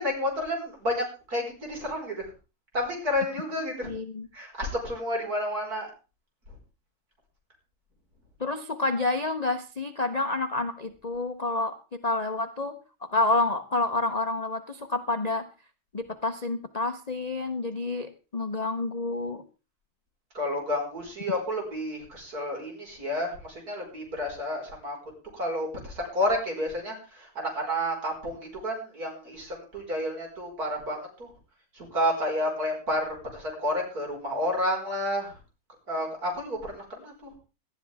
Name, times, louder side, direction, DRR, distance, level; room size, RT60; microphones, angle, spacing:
voice 1, 0.0-2.3 2.7-3.9 4.3-5.9 20.3-25.0 25.3-31.3 31.8-35.3 35.9-37.3, left 1 dB, 45° right, 1 dB, 5.4 m, -30 dB
voice 2, 3.8-4.3 8.4-12.8 13.0-15.5 15.9-19.4, left 2 dB, 55° left, 7 dB, 0.4 m, -29 dB
18.5 x 12.5 x 3.5 m, 0.32 s
omnidirectional pair, 2.2 m